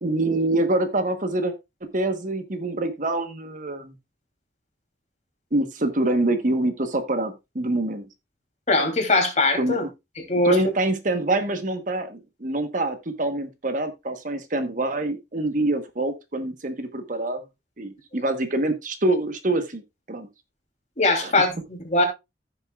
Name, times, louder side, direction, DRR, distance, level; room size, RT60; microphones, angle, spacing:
voice 1, 0.0-1.5 1.9-3.9 5.5-8.1 9.6-9.8 10.4-17.4 17.8-19.8 20.1-20.3 21.2-21.3, right 2 dB, 45° right, 1.2 m, -25 dB
voice 2, 8.7-9.8 10.3-10.6 21.0-22.0, left 2 dB, 40° left, 3.0 m, -21 dB
15.5 x 6.7 x 2.4 m
head